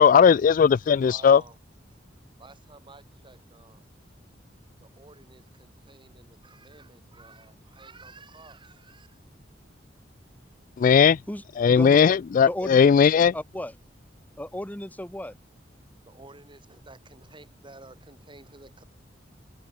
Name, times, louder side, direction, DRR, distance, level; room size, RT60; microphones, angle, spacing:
voice 1, 0.0-1.4 10.8-11.2 11.6-13.3, left 7 dB, 45° left, 0.3 m, -17 dB
voice 2, 1.0-1.6 2.4-3.9 4.8-9.2 15.9-18.8, right 3 dB, 25° right, 7.8 m, -51 dB
voice 3, 11.3-12.0 12.5-12.8 13.3-13.7 14.4-15.3, left 1 dB, 10° left, 1.8 m, -34 dB
head